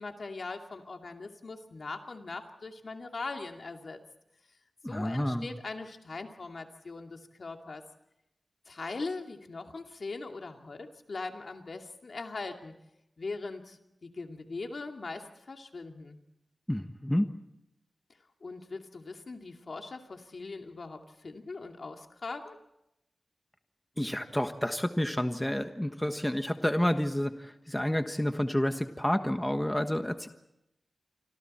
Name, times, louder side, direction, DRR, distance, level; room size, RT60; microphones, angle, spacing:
voice 1, 0.0-4.0 4.9-7.8 8.7-12.7 13.2-16.2 18.4-22.6, left 3 dB, 60° left, 4 dB, 2.5 m, -40 dB
voice 2, 4.8-5.5 16.7-17.3 24.0-30.3, left 1 dB, 10° left, 7 dB, 1.3 m, -29 dB
28.0 x 25.5 x 4.4 m, 0.84 s
wide cardioid pair, 85°, 0 cm